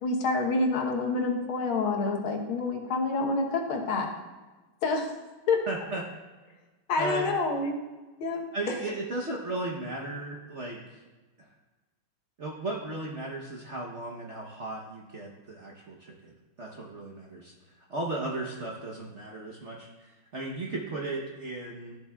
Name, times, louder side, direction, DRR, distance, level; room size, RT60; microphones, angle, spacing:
voice 1, 0.0-4.1 4.8-5.1 5.5-5.6 6.9-7.8 8.2-8.4, left 3 dB, 85° left, 2 dB, 1.9 m, -27 dB
voice 2, 5.7-6.0 7.0-7.3 8.5-11.0 11.4-11.5 12.4-22.0, right 2 dB, 55° right, -2 dB, 0.8 m, -36 dB
13.0 x 7.4 x 2.3 m, 1.2 s
omnidirectional pair, 2.2 m